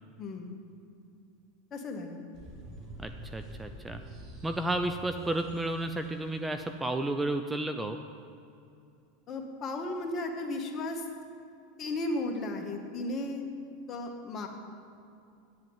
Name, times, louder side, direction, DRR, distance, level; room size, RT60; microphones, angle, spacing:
voice 1, 0.2-0.6 1.7-2.2 9.3-11.0 11.8-13.4 13.9-14.5, left 2 dB, 35° left, 3 dB, 1.7 m, -35 dB
sound 1, 2.3-6.3, right 1 dB, 45° right, 2.5 m, -46 dB
voice 2, 3.0-4.0 4.4-8.0, right 1 dB, 10° right, 7 dB, 0.6 m, -32 dB
9.4 x 7.6 x 8.9 m, 2.5 s
hypercardioid pair, 110°, 0 cm